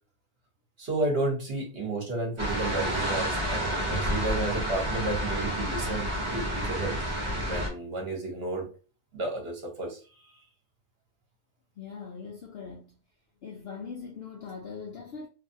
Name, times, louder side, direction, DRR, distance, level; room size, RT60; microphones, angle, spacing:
voice 1, 0.8-6.9 7.5-8.7 9.1-10.0, right 2 dB, 45° right, 1.0 m, -32 dB
sound 1, 2.4-7.7, equal, 25° right, 0.8 m, -29 dB
voice 2, 11.8-13.0 13.4-15.3, left 5 dB, 90° left, 0.5 m, -41 dB
2.7 x 2.4 x 2.6 m
omnidirectional pair, 1.6 m